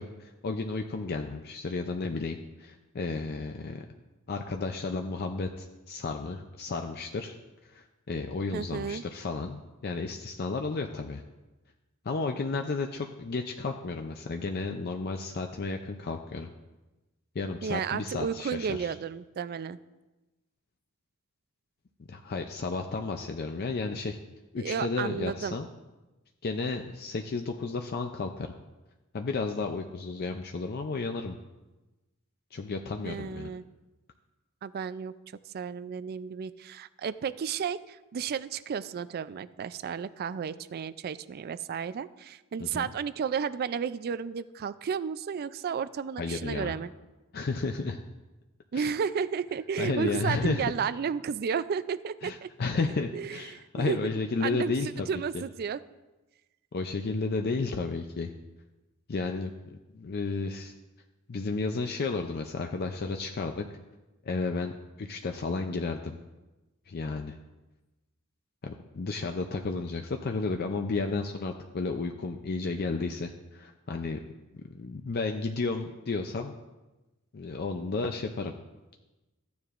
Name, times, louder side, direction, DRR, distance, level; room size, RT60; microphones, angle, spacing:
voice 1, 0.0-3.8 4.3-7.4 7.6-11.2 12.0-16.5 17.3-18.9 22.1-24.2 24.5-25.7 26.4-28.5 29.1-31.4 32.5-33.5 42.6-42.9 46.2-46.8 47.3-48.0 48.7-48.9 49.8-50.7 52.2-55.1 56.7-58.3 59.1-59.5 59.9-60.7 61.3-63.6 64.2-66.2 66.9-67.4 68.6-74.2 74.5-76.6 77.3-78.5, left 3 dB, 50° left, 4 dB, 0.5 m, -32 dB
voice 2, 8.5-9.0 17.6-19.8 24.6-25.6 33.0-33.7 34.6-35.1 35.5-46.9 48.7-52.5 53.1-54.0 54.4-54.8 55.1-55.8, right 6 dB, 45° right, 16 dB, 0.3 m, -33 dB
14.5 x 9.4 x 2.5 m, 1.1 s
head